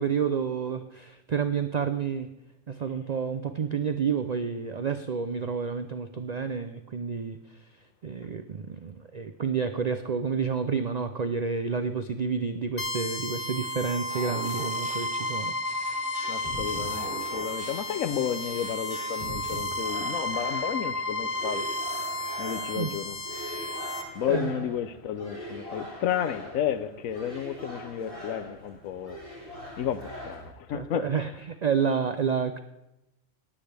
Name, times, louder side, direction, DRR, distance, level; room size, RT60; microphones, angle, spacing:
voice 1, 0.0-2.3 2.7-7.4 8.0-15.5 22.7-22.9 24.3-24.5 30.7-31.3 31.6-32.6, right 6 dB, 75° right, 0.3 m, -29 dB
sound 1, 12.8-24.0, left 1 dB, 60° left, 1.8 m, -32 dB
sound 2, 14.1-19.6, right 1 dB, 35° left, 4.0 m, -42 dB
voice 2, 16.3-21.7 22.4-23.2 24.1-29.2 29.8-31.1, left 9 dB, 75° left, 1.1 m, -32 dB
sound 3, 19.8-30.5, equal, 15° right, 3.8 m, -42 dB
19.5 x 8.5 x 3.4 m
omnidirectional pair, 1.4 m